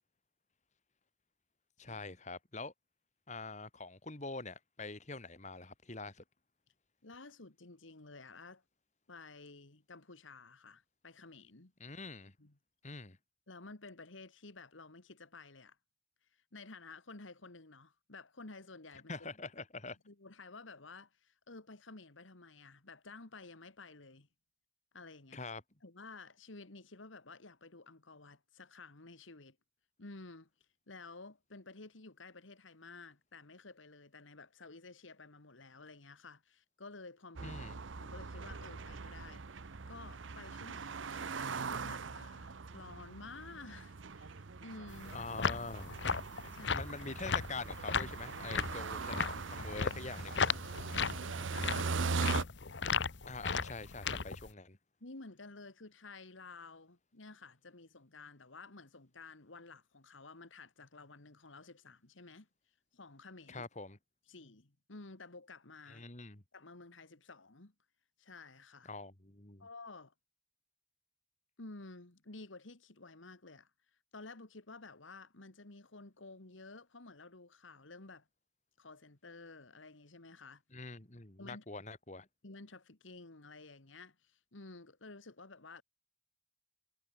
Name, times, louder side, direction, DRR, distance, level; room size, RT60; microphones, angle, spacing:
voice 1, 1.8-2.7 3.3-6.2 11.8-12.3 12.8-13.2 19.1-20.0 25.3-25.6 37.4-37.8 45.1-46.0 46.7-50.4 53.3-54.8 63.5-64.0 65.9-66.4 68.8-69.7 80.7-82.3, left 3 dB, 40° left, 2.5 m, -45 dB
voice 2, 7.0-8.6 9.1-11.7 12.4-12.6 13.5-15.8 16.5-19.1 20.1-24.3 24.9-25.4 25.8-29.6 30.0-30.5 30.9-37.6 38.0-45.2 46.5-46.9 50.9-52.4 55.0-62.5 62.9-63.7 64.3-66.1 66.5-67.7 68.2-68.9 69.6-70.1 71.6-73.7 74.1-78.3 78.8-80.6 81.4-81.6 82.4-85.8, left 3 dB, 90° left, 2.1 m, -52 dB
sound 1, 37.4-52.4, right 4 dB, 80° right, 0.8 m, -41 dB
sound 2, 44.9-54.5, left 5 dB, 65° left, 1.1 m, -36 dB
head